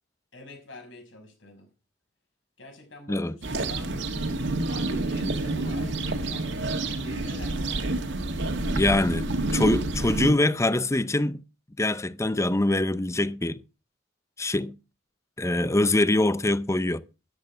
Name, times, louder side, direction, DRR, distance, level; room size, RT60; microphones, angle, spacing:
voice 1, 0.3-1.7 2.6-3.9 4.7-8.4, left 2 dB, 75° left, 6.2 m, -45 dB
sound 1, 3.4-10.3, right 2 dB, 70° right, 1.9 m, -28 dB
voice 2, 8.7-11.4 11.8-13.6 14.4-14.8 15.4-17.0, left 2 dB, 15° left, 0.6 m, -24 dB
13.5 x 11.0 x 5.0 m
head